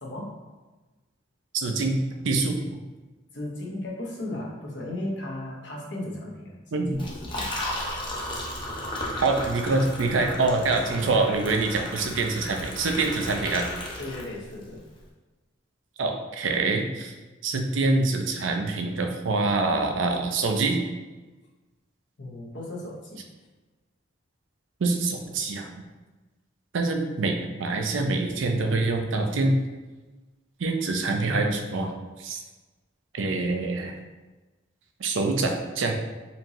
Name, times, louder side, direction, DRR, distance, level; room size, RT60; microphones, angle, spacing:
voice 1, 0.0-0.4 3.3-7.6 14.0-14.8 22.2-23.2, left 1 dB, 65° left, -3 dB, 0.9 m, -36 dB
voice 2, 1.6-2.0 2.2-2.6 6.7-7.0 9.2-13.7 16.0-17.1 17.4-20.8 24.8-25.7 26.7-29.6 30.6-31.9 32.2-32.4 33.1-33.9 35.0-35.9, right 3 dB, 85° right, 4 dB, 0.5 m, -25 dB
Liquid, 6.9-14.6, left 1 dB, 25° left, 0.6 m, -34 dB
4.4 x 2.7 x 3.0 m, 1.2 s
head